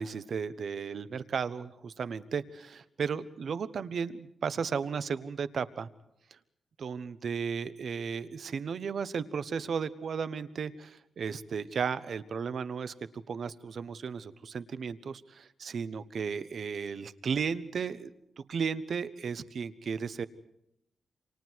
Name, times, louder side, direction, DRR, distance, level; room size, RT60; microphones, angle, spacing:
voice 1, 0.0-5.9 6.8-12.9 13.3-18.1 18.5-20.3, right 6 dB, 55° right, 13 dB, 1.1 m, -34 dB
29.0 x 27.0 x 4.7 m, 0.78 s
wide cardioid pair, 165°, 0 cm